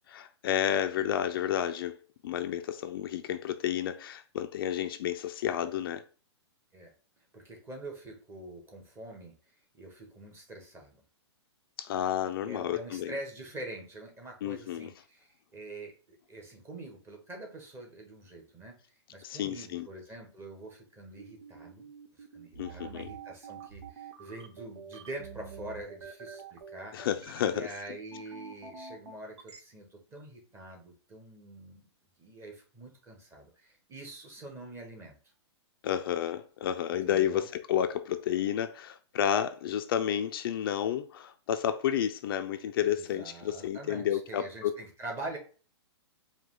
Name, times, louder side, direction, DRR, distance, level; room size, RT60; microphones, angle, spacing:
voice 1, 0.1-2.0 2.2-6.0 11.8-13.1 14.4-14.9 19.2-19.9 22.6-23.1 26.9-27.7 35.8-44.7, left 10 dB, 55° left, 0.4 m, -31 dB
voice 2, 7.3-9.3 9.7-11.0 12.4-18.7 19.1-21.9 22.2-27.0 27.4-31.9 32.2-35.2 37.0-37.5 42.9-45.4, right 2 dB, 15° right, 1.1 m, -45 dB
sound 1, 21.2-29.6, right 6 dB, 80° right, 0.9 m, -46 dB
4.8 x 2.3 x 3.7 m
hypercardioid pair, 145°, 15 cm